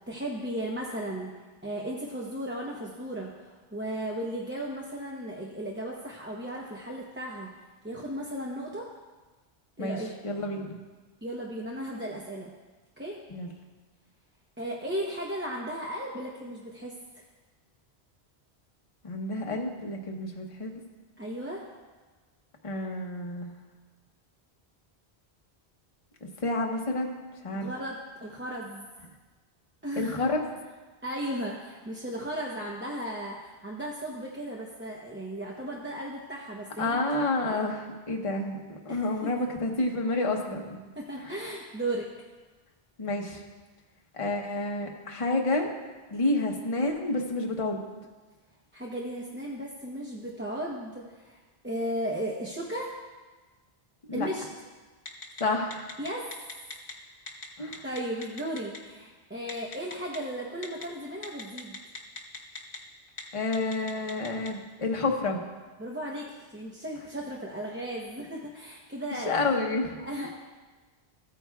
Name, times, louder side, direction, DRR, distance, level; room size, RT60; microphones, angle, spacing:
voice 1, 0.1-1.3 1.6-7.5 7.8-8.9 9.8-10.1 11.2-12.5 13.0-13.2 14.6-16.9 21.2-21.6 27.5-28.9 29.8-30.2 31.0-37.2 37.4-37.6 38.9-39.3 41.0-42.1 48.7-51.4 51.6-53.0 54.1-54.4 56.0-56.3 57.8-61.8 65.8-69.3 70.0-70.3, right 1 dB, 10° right, -3 dB, 0.7 m, -35 dB
voice 2, 10.2-10.7 13.3-13.5 19.0-20.7 22.6-23.5 26.2-27.2 27.4-27.7 30.0-30.5 36.8-40.8 41.2-41.3 43.0-43.4 44.1-45.7 46.1-47.8 54.1-54.3 55.4-56.0 57.6-57.8 63.3-65.4 69.3-70.3, left 2 dB, 35° left, 1 dB, 1.0 m, -29 dB
Telephone, 55.1-55.4 55.7-56.9 57.3-57.4 57.7-58.8 59.5-60.2 60.6-60.8 61.2-62.8 63.1-63.2 63.5-64.5, left 3 dB, 55° left, 1.3 m, -39 dB
15.0 x 9.1 x 2.3 m, 1.3 s
omnidirectional pair, 1.1 m